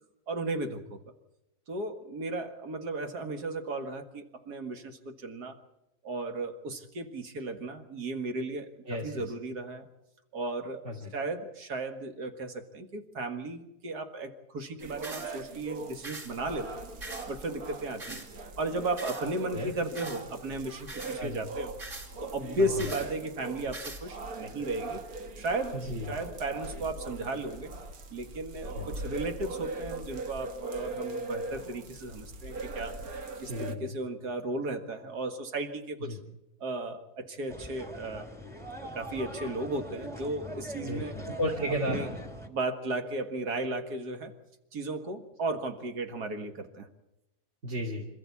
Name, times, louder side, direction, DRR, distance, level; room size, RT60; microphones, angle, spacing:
voice 1, 0.3-1.0 1.7-5.6 6.0-9.9 10.3-16.8 17.3-18.2 18.6-21.7 22.2-25.0 25.4-27.7 28.1-33.0 33.4-36.2 36.6-38.3 38.8-41.2 41.9-42.1 42.4-44.3 44.7-46.9, right 2 dB, 85° right, 6 dB, 2.3 m, -35 dB
voice 2, 8.9-9.2 10.8-11.1 19.5-19.7 21.2-21.4 22.6-22.7 25.7-26.2 28.7-28.9 33.4-33.9 36.0-36.2 40.8-42.0 47.6-48.1, equal, 50° right, -1 dB, 3.0 m, -34 dB
sound 1, 14.8-33.8, right 3 dB, 70° right, 1.8 m, -40 dB
sound 2, 15.0-15.3 16.0-16.3 17.0-17.3 18.0-18.3 19.0-19.2 19.9-20.2 20.9-21.2 21.8-22.1 22.8-23.1 23.7-24.0, right 2 dB, 25° right, 4.2 m, -41 dB
sound 3, 37.5-42.5, left 1 dB, ahead, 1.7 m, -41 dB
26.5 x 14.0 x 8.4 m, 0.92 s
omnidirectional pair, 1.6 m